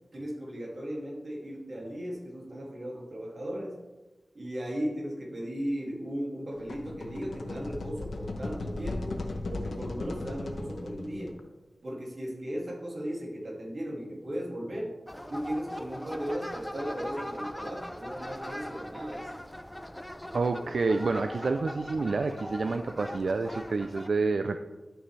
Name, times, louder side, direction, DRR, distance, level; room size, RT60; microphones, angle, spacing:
voice 1, 0.1-3.8 4.3-9.2 9.5-11.4 11.8-14.9 15.3-19.3, equal, 50° right, -3 dB, 2.2 m, -36 dB
sound 1, 6.5-11.4, left 2 dB, 80° left, 0.8 m, -37 dB
sound 2, 15.1-24.1, equal, 10° left, 0.5 m, -40 dB
voice 2, 20.3-24.6, right 3 dB, 75° right, 8 dB, 0.3 m, -28 dB
10.5 x 6.1 x 3.2 m, 1.1 s
wide cardioid pair, 105°, 0 cm